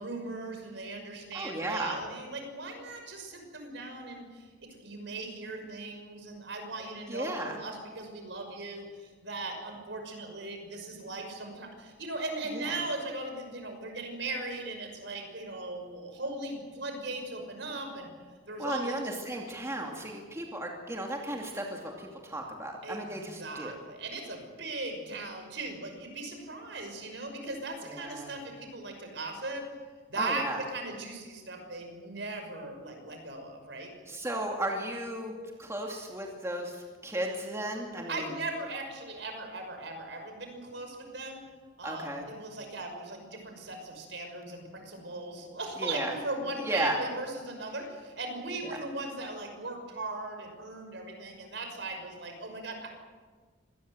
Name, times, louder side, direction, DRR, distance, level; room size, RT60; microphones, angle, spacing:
voice 1, 0.0-18.1 18.5-19.0 22.8-29.6 30.1-33.9 38.1-41.4 41.8-52.9, right 2 dB, 65° right, 4 dB, 6.0 m, -38 dB
voice 2, 1.3-2.0 7.1-7.6 12.5-12.8 18.6-23.8 27.8-28.3 30.2-30.6 34.1-38.4 41.8-42.2 45.8-46.1 46.6-47.0 48.7-48.8, right 1 dB, 15° right, 0 dB, 2.6 m, -35 dB
25.5 x 19.5 x 8.0 m, 1.5 s
head